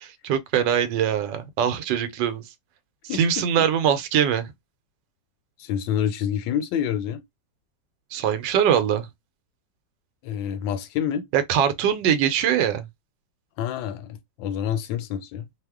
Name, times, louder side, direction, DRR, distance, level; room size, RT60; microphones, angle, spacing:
voice 1, 0.0-2.4 3.1-4.5 8.1-9.1 11.3-12.8, right 9 dB, 75° right, 1.3 m, -22 dB
voice 2, 3.1-3.7 5.6-7.2 10.2-11.3 13.6-15.5, left 9 dB, 80° left, 1.2 m, -28 dB
3.0 x 2.0 x 3.4 m
omnidirectional pair, 2.0 m